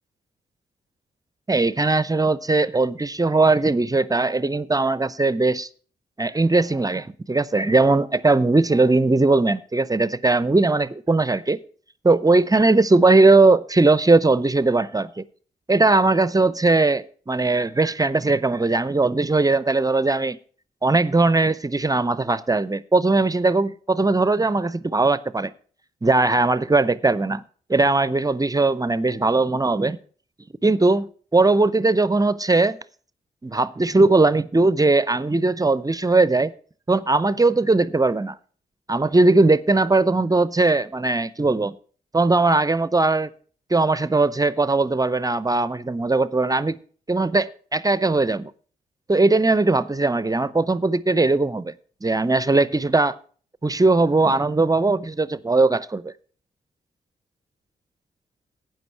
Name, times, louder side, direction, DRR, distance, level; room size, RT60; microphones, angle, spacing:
voice 1, 1.5-5.7 6.2-11.6 12.0-15.2 15.7-20.4 20.8-25.5 26.0-27.4 27.7-30.0 30.6-32.8 33.4-36.5 36.9-38.4 38.9-41.8 42.1-43.3 43.7-46.8 47.1-48.5 49.1-51.7 52.0-53.2 53.6-56.1, right 3 dB, 20° right, 0.6 m, -19 dB
12.0 x 9.2 x 4.5 m
supercardioid pair, 45°, 18 cm